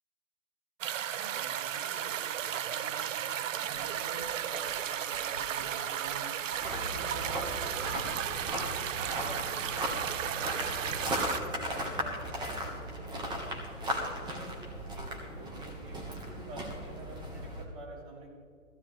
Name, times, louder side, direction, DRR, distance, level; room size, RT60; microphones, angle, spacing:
sound 1, 0.8-11.4, right 10 dB, 65° right, 0.6 m, -34 dB
voice 1, 1.1-3.3 3.5-6.5 6.9-7.9 9.0-13.5 14.1-14.4 14.8-18.3, right 2 dB, 40° right, -3 dB, 3.8 m, -48 dB
sound 2, 3.7-3.9 4.2-4.4 4.7-4.8 5.1-5.7 6.0-6.2 6.5-6.7 7.0-7.6 7.9-8.1 8.4-8.5 8.8-9.4 9.7-9.9 10.2-10.4 10.7-11.0, left 3 dB, 10° left, 0.3 m, -52 dB
sound 3, 6.6-17.6, equal, 10° right, 1.5 m, -37 dB
15.5 x 15.0 x 3.4 m, 2.2 s
hypercardioid pair, 135°, 41 cm